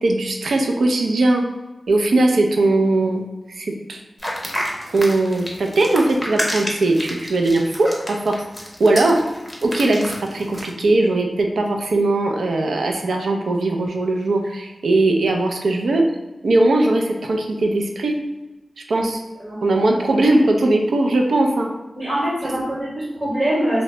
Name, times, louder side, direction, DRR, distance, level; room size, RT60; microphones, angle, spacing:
voice 1, 0.0-1.4 1.9-3.2 3.6-4.0 4.9-8.4 8.8-9.2 9.6-16.0 16.4-18.1 18.9-19.2 19.6-21.7, right 2 dB, 85° right, 2 dB, 0.4 m, -19 dB
sound 1, 4.2-10.7, equal, 5° left, 0.6 m, -29 dB
voice 2, 19.4-19.8 21.9-23.8, right 1 dB, 45° right, -7 dB, 1.0 m, -23 dB
2.7 x 2.0 x 3.1 m, 1.1 s
wide cardioid pair, 65°, 0 cm